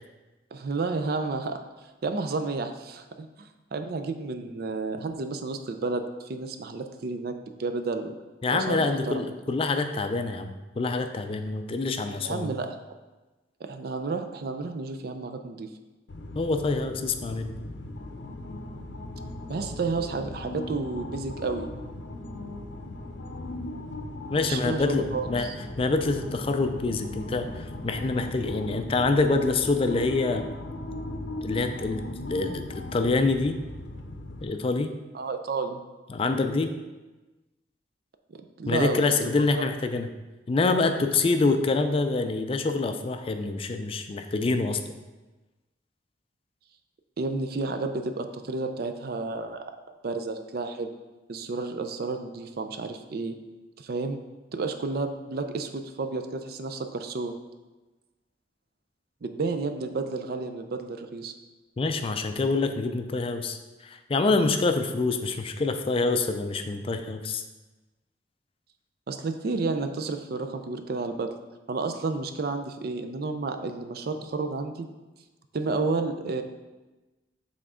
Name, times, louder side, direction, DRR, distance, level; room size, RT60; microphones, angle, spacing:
voice 1, 0.5-1.6 2.0-7.3 7.6-8.1 8.5-9.2 12.2-12.7 13.6-15.7 19.5-21.7 24.4-25.6 35.1-35.8 38.6-39.7 47.2-49.6 50.0-50.9 51.3-53.3 53.8-54.2 54.5-57.4 59.2-61.3 69.1-71.3 71.7-74.9 75.5-76.4, right 3 dB, 60° right, 8 dB, 0.4 m, -31 dB
voice 2, 8.4-12.5 16.4-17.6 24.3-25.5 25.8-30.5 31.4-33.6 34.4-34.9 36.1-36.7 38.7-40.1 40.5-44.8 61.8-67.4, left 3 dB, 30° left, 7 dB, 0.4 m, -26 dB
sound 1, 16.1-34.4, left 2 dB, 85° left, 0.6 m, -38 dB
7.0 x 3.7 x 3.7 m, 1.1 s
head